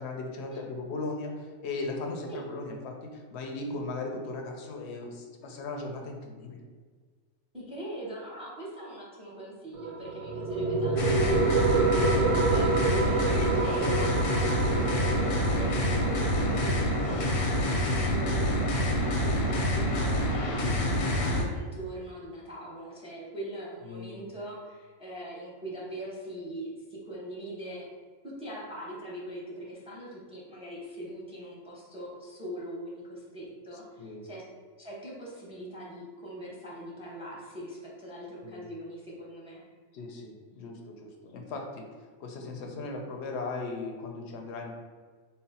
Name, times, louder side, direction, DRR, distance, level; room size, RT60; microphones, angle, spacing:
voice 1, 0.0-6.6 12.3-12.5 15.9-16.2 23.8-24.3 34.0-34.2 38.4-38.6 39.9-41.9 42.2-44.7, left 3 dB, 60° left, 2 dB, 0.7 m, -37 dB
voice 2, 7.5-27.9 28.2-34.4 34.8-39.6, right 1 dB, 5° right, -5 dB, 0.7 m, -42 dB
sound 1, 9.7-20.8, right 3 dB, 90° right, 1.1 m, -30 dB
sound 2, 11.0-21.4, left 1 dB, 90° left, 1.1 m, -27 dB
4.1 x 2.0 x 4.1 m, 1.5 s
omnidirectional pair, 1.5 m